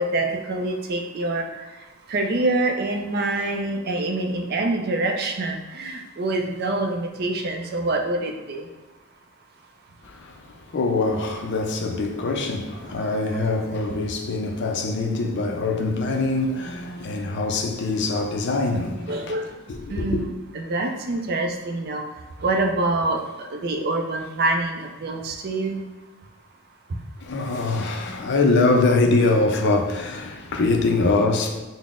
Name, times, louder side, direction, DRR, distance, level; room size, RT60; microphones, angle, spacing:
voice 1, 0.0-1.4 2.1-8.6 19.1-19.4 19.9-20.3 20.5-22.0 22.4-23.2 23.5-25.8, right 2 dB, 45° right, 0.4 m, -25 dB
voice 2, 10.0-10.4 10.7-19.3 19.7-20.2 27.2-31.6, left 3 dB, 50° left, 0.4 m, -23 dB
3.9 x 2.0 x 3.5 m
head